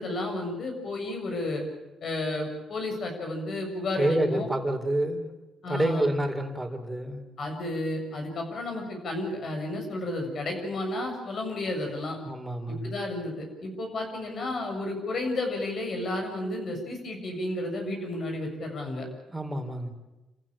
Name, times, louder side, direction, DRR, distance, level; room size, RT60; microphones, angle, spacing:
voice 1, 0.0-1.6 2.0-4.5 5.6-6.1 7.4-12.2 12.8-19.1, left 2 dB, 55° left, 3 dB, 7.4 m, -32 dB
voice 2, 4.0-5.3 5.7-7.2 12.2-13.0 19.3-19.9, right 1 dB, 10° right, 4 dB, 4.1 m, -28 dB
28.5 x 15.0 x 8.9 m, 1.0 s
cardioid pair, 90°, 0 cm